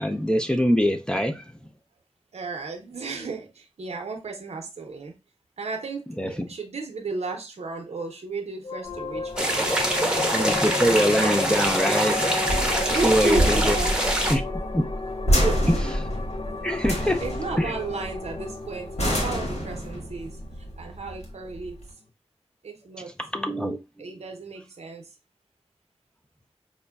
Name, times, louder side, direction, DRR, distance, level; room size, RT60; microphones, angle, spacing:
voice 1, 0.0-1.5 6.2-6.3 10.1-12.6 12.9-13.8 14.3-14.4 14.7-14.8 15.7-15.8 16.6-17.2 17.6-17.8 23.2-24.1, equal, 10° left, 0.5 m, -24 dB
voice 2, 2.3-5.1 5.6-10.4 12.7-14.0 15.3-15.7 17.2-20.4 20.8-21.8 22.6-23.1 24.0-25.1, right 4 dB, 80° right, 0.6 m, -33 dB
sound 1, 8.6-21.5, left 3 dB, 60° left, 0.5 m, -34 dB
sound 2, 8.9-21.9, equal, 80° left, 1.1 m, -28 dB
sound 3, 9.4-14.3, right 1 dB, 10° right, 0.9 m, -24 dB
5.0 x 2.1 x 2.2 m
cardioid pair, 45°, 11 cm